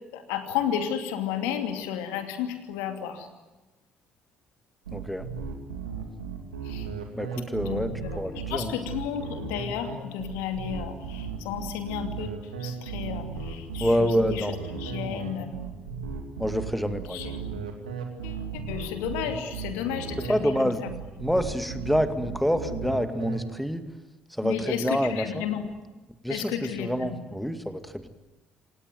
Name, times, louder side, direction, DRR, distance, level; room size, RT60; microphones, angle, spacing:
voice 1, 0.1-3.3 6.6-6.9 7.5-8.2 8.5-15.6 17.1-17.6 18.2-20.9 24.4-25.7 26.3-27.2, left 9 dB, 75° left, 6 dB, 2.6 m, -33 dB
sound 1, 4.8-23.4, right 6 dB, 85° right, 2.7 m, -35 dB
voice 2, 4.9-5.3 7.2-8.7 13.8-14.6 15.1-15.2 16.4-17.3 20.3-20.8 21.2-23.8 24.4-25.5 26.2-28.1, equal, ahead, 9 dB, 2.2 m, -27 dB
27.5 x 18.0 x 9.4 m, 1.2 s
hypercardioid pair, 50°, 4 cm